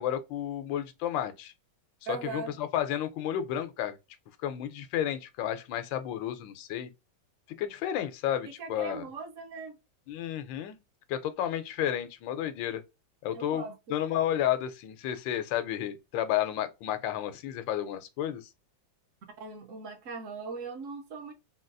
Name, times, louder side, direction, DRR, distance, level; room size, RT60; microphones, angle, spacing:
voice 1, 0.0-1.5 2.1-4.0 4.4-6.9 7.6-9.0 10.1-10.8 11.1-12.8 13.2-13.6 13.9-18.5, left 11 dB, 90° left, 1.3 m, -31 dB
voice 2, 2.1-2.5 8.6-9.8 13.3-14.0 19.4-21.3, right 4 dB, 65° right, 0.8 m, -39 dB
3.8 x 2.3 x 2.5 m
omnidirectional pair, 2.0 m